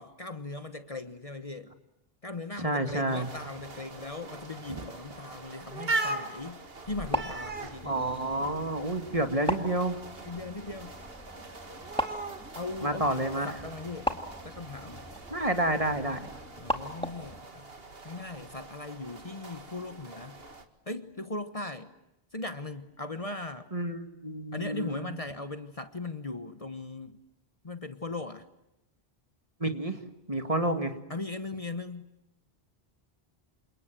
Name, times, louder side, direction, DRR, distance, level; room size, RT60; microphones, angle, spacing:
voice 1, 0.0-1.7 2.2-6.6 6.8-8.2 10.2-10.9 12.6-14.2 14.4-15.0 16.6-17.7 18.0-20.4 20.9-21.9 22.3-23.7 24.5-27.2 27.6-28.5 31.1-32.1, left 2 dB, 35° left, 10 dB, 1.3 m, -39 dB
voice 2, 2.6-3.3 4.7-4.8 7.8-10.0 12.8-13.5 15.3-16.2 23.7-25.1 29.6-30.0 30.3-30.9, right 1 dB, 35° right, 7 dB, 2.3 m, -29 dB
sound 1, 3.1-20.7, right 2 dB, 65° right, 2.3 m, -41 dB
sound 2, 6.8-17.4, equal, 5° left, 2.1 m, -38 dB
28.5 x 27.0 x 7.7 m, 0.91 s
omnidirectional pair, 1.1 m